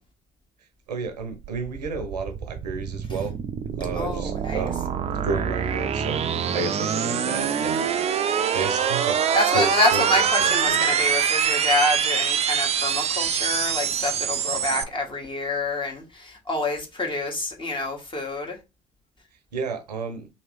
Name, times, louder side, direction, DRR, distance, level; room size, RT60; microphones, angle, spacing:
voice 1, 0.9-3.3 3.8-6.2 6.5-7.9 8.5-9.2 9.5-11.0 19.5-20.3, right 4 dB, 85° right, 0.6 m, -31 dB
sound 1, 1.3-14.8, right 8 dB, 30° right, 0.4 m, -25 dB
voice 2, 3.9-4.6 9.3-18.6, left 2 dB, 25° left, 1.3 m, -27 dB
2.9 x 2.7 x 3.1 m
hypercardioid pair, 55°, 20 cm